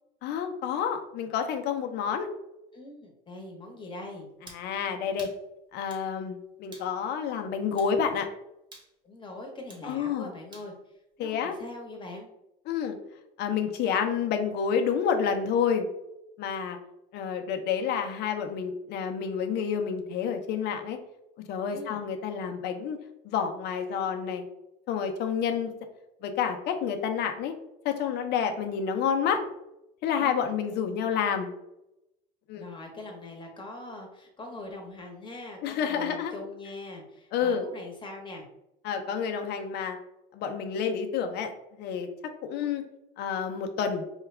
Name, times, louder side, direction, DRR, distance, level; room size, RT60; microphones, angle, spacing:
voice 1, 0.2-2.3 4.4-5.3 5.7-8.3 9.8-10.3 11.2-11.5 12.7-13.0 13.4-15.9 16.4-16.8 17.1-21.0 21.5-23.0 23.2-24.5 24.9-25.7 26.2-27.5 27.8-29.4 30.0-31.5 32.5-32.6 35.6-36.3 37.3-37.6 38.8-40.0 40.3-42.1 42.4-42.8 43.2-44.0, left 7 dB, 60° left, 5 dB, 0.7 m, -29 dB
voice 2, 2.7-4.3 9.0-10.7 11.2-12.3 21.7-22.0 30.2-30.5 32.5-38.4, left 2 dB, 25° left, 1 dB, 1.2 m, -42 dB
sound 1, 4.5-4.7 5.2-5.4 5.9-6.1 6.7-6.9 7.8-8.0 8.7-8.9 9.7-9.9 10.5-10.7, right 2 dB, 25° right, 1.1 m, -49 dB
4.6 x 2.4 x 3.3 m, 0.87 s
supercardioid pair, 110°, 19 cm